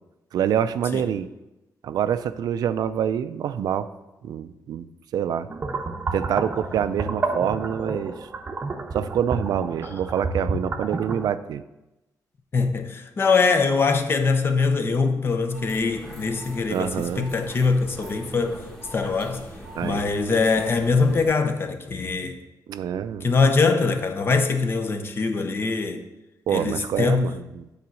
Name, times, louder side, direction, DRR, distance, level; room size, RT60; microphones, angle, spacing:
voice 1, 0.3-1.3 1.8-3.9 4.2-4.9 5.1-5.5 6.1-8.2 8.9-11.6 16.7-17.3 19.7-20.1 22.7-23.3 26.5-27.7, right 9 dB, 80° right, 0.4 m, -26 dB
sound 1, 5.5-11.3, right 3 dB, 30° right, 0.7 m, -30 dB
voice 2, 12.5-18.6 18.9-19.4 19.8-22.4 23.2-26.0 26.5-27.3, left 4 dB, 35° left, 0.7 m, -23 dB
sound 2, 15.5-21.3, right 1 dB, 10° left, 1.4 m, -40 dB
8.8 x 4.0 x 6.2 m
wide cardioid pair, 155°, 7 cm